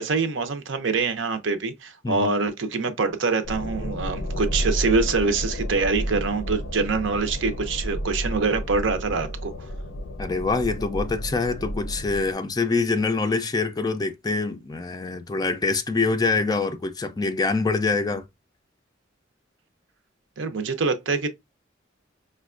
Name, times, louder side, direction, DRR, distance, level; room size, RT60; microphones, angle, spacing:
voice 1, 0.0-9.5 20.4-21.3, right 4 dB, 70° right, 0.6 m, -25 dB
sound 1, 3.4-12.3, equal, 70° left, 0.5 m, -31 dB
voice 2, 10.2-18.2, left 3 dB, 20° left, 0.4 m, -25 dB
5.0 x 2.2 x 2.4 m
head